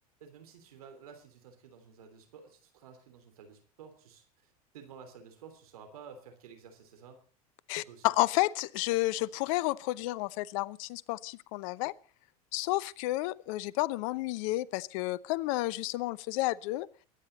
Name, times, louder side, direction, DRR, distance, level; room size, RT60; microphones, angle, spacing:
voice 1, 0.2-7.2 7.7-8.1, right 6 dB, 75° right, 6 dB, 3.4 m, -52 dB
voice 2, 7.7-11.9 12.5-16.9, left 18 dB, 60° left, 21 dB, 0.8 m, -31 dB
22.5 x 10.0 x 4.1 m, 0.40 s
hypercardioid pair, 85°, 19 cm